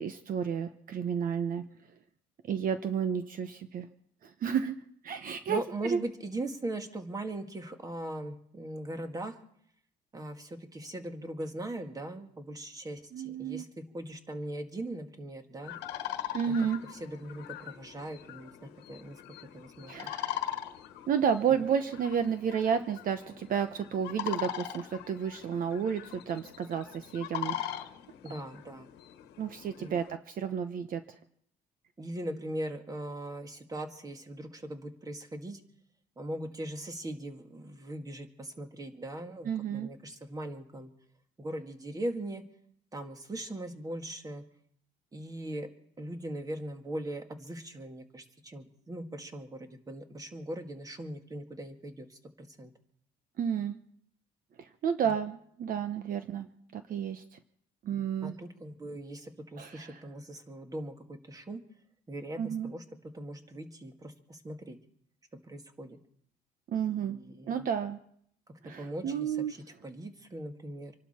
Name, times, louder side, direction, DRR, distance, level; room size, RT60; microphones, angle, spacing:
voice 1, 0.0-1.6 2.4-3.9 4.2-4.8 5.0-6.0 13.1-13.6 16.3-16.8 19.9-20.5 21.1-27.8 29.4-31.0 39.5-39.9 53.4-53.8 54.6-56.5 56.7-57.2 57.8-58.3 59.6-60.0 62.4-62.7 66.7-67.2 67.5-68.0 68.6-69.5, right 7 dB, 55° right, 9 dB, 1.0 m, -31 dB
voice 2, 5.5-9.4 10.1-15.7 16.5-16.6 16.9-19.2 19.5-20.1 28.2-28.9 29.8-30.0 32.0-35.6 36.2-40.9 41.4-42.4 42.9-44.4 45.1-45.7 46.0-52.7 55.0-55.1 58.2-61.6 62.1-62.8 63.1-64.8 65.4-66.0 67.1-67.7 68.8-70.9, right 1 dB, 20° right, 6 dB, 2.0 m, -40 dB
sound 1, 15.6-30.2, left 11 dB, 85° left, 1.3 m, -41 dB
26.5 x 12.0 x 4.4 m, 0.68 s
cardioid pair, 110°, 17 cm